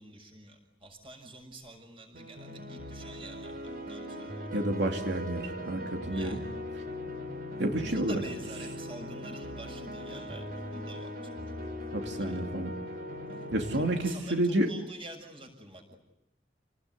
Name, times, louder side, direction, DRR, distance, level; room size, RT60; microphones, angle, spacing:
voice 1, 0.0-4.5 6.1-6.4 7.7-10.4 10.7-11.4 12.2-12.4 13.3-13.5 13.7-16.0, right 2 dB, 30° right, 4 dB, 6.6 m, -47 dB
sound 1, 2.1-14.1, left 1 dB, 50° right, 4.7 m, -40 dB
voice 2, 4.5-6.4 7.6-8.1 11.9-12.7 13.5-14.7, right 1 dB, 85° right, 2 dB, 2.8 m, -30 dB
29.5 x 20.0 x 9.5 m, 0.85 s
head